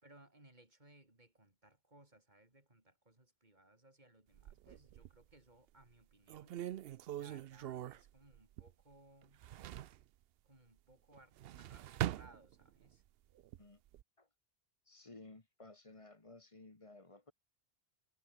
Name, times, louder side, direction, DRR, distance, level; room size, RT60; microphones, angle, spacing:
voice 1, 0.0-6.6 7.2-9.4 10.4-13.0, right 1 dB, 40° right, 4.4 m, -64 dB
sound 1, 4.3-5.3 5.8-5.9 6.3-8.9 9.2-10.0 11.2-12.9 13.4-14.0, right 12 dB, 65° right, 0.7 m, -43 dB
voice 2, 14.9-17.3, left 2 dB, 30° left, 1.6 m, -56 dB
omnidirectional pair, 1.1 m